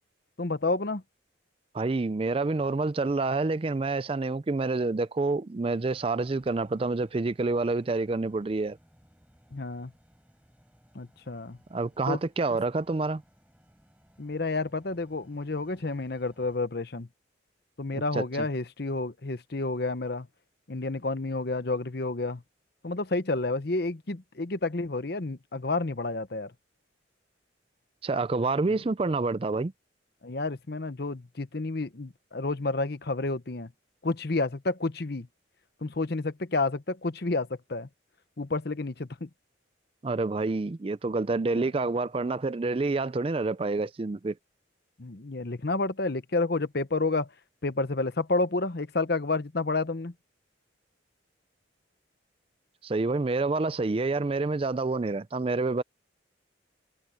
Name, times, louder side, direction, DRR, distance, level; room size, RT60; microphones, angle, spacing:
voice 1, 0.4-1.0 9.5-9.9 10.9-11.6 12.1-12.2 14.2-17.1 17.8-20.3 20.7-22.4 22.8-26.5 28.7-28.8 30.2-33.7 34.0-35.3 35.8-37.9 38.4-39.3 41.6-41.7 45.0-47.3 47.6-50.1, left 3 dB, 55° left, 0.9 m, -30 dB
voice 2, 1.7-8.8 11.7-13.2 18.1-18.2 28.0-29.7 40.0-44.3 52.8-55.8, right 3 dB, 30° right, 0.4 m, -28 dB
sound 1, 5.7-16.6, equal, 5° right, 7.4 m, -62 dB
head